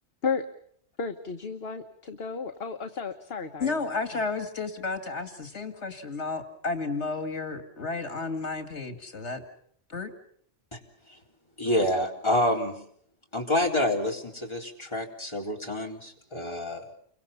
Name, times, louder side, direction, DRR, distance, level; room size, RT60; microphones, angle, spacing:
voice 1, 1.0-3.9, left 5 dB, 60° left, 1.5 m, -33 dB
voice 2, 3.6-9.4 9.9-10.1, left 4 dB, 80° left, 2.5 m, -32 dB
voice 3, 11.6-12.8 13.3-16.9, left 1 dB, 25° left, 4.0 m, -28 dB
30.0 x 24.5 x 5.7 m
omnidirectional pair, 1.2 m